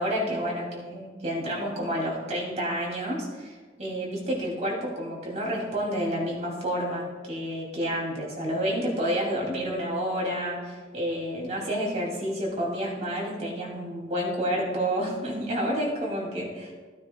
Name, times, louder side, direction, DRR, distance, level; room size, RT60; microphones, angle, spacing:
voice 1, 0.0-16.7, equal, 40° right, -3 dB, 2.7 m, -29 dB
15.5 x 9.5 x 2.3 m, 1.4 s
head